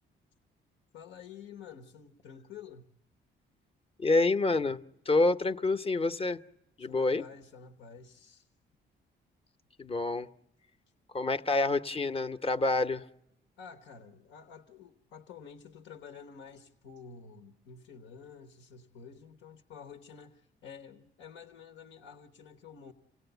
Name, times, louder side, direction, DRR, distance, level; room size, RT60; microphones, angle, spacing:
voice 1, 0.9-2.9 6.8-8.5 13.6-22.9, left 6 dB, 90° left, 1.1 m, -50 dB
voice 2, 4.0-6.4 6.8-7.2 9.8-10.3 11.1-13.0, left 3 dB, 30° left, 0.8 m, -27 dB
27.5 x 17.0 x 8.0 m
cardioid pair, 90°, 20 cm